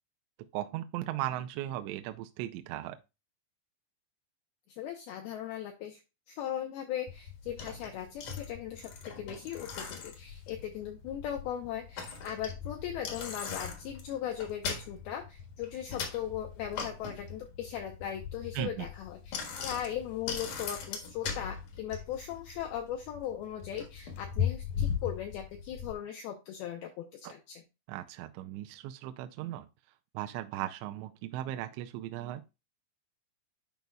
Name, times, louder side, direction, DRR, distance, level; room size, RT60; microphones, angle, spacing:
voice 1, 0.5-3.0 18.5-18.9 27.2-27.3 27.9-29.7 30.1-32.4, right 13 dB, 80° right, 2.8 m, -37 dB
voice 2, 4.7-6.0 6.3-27.6, left 10 dB, 80° left, 2.2 m, -38 dB
Bicycle, 7.1-25.9, left 7 dB, 60° left, 2.2 m, -39 dB
10.5 x 5.1 x 2.3 m
omnidirectional pair, 5.3 m